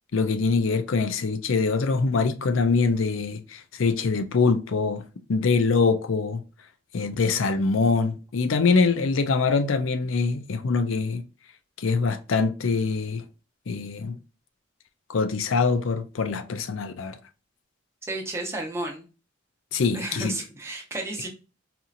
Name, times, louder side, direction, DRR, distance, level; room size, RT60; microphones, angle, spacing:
voice 1, 0.1-5.0 5.3-6.4 6.9-11.2 11.8-13.2 13.7-14.2 15.1-17.2 19.7-20.3, left 4 dB, 85° left, 0.5 m, -24 dB
voice 2, 18.1-19.0 19.9-21.3, right 2 dB, 15° right, 0.8 m, -32 dB
4.3 x 2.7 x 2.5 m
head